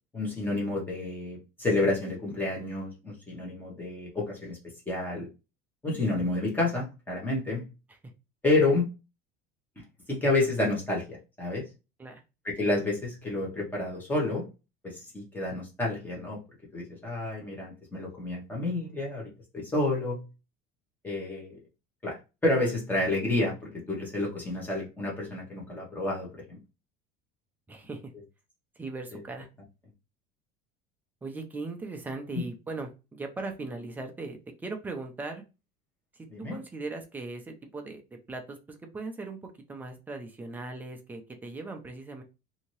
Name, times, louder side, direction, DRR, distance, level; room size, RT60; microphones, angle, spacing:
voice 1, 0.1-4.6 4.9-5.3 5.8-7.7 8.4-8.9 10.1-11.6 12.4-14.5 14.8-16.4 16.7-20.3 21.0-21.5 22.0-22.2 22.4-26.6 29.1-29.2 36.3-36.6, left 2 dB, 10° left, -3 dB, 1.0 m, -29 dB
voice 2, 27.7-28.1 28.8-29.5 31.2-35.4 36.1-38.0 38.3-42.2, right 3 dB, 10° right, 4 dB, 0.4 m, -39 dB
2.7 x 2.7 x 3.0 m, 0.28 s
cardioid pair, 170°, 20 cm